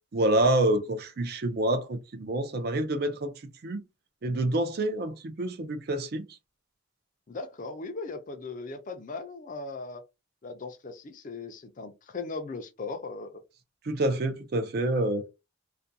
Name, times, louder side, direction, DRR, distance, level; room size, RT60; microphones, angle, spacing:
voice 1, 0.1-3.3 3.6-3.8 4.2-6.2 13.9-15.3, right 1 dB, 50° right, 0.4 m, -27 dB
voice 2, 7.3-10.0 10.4-13.4, left 3 dB, 40° left, 0.4 m, -38 dB
2.5 x 2.2 x 2.6 m
head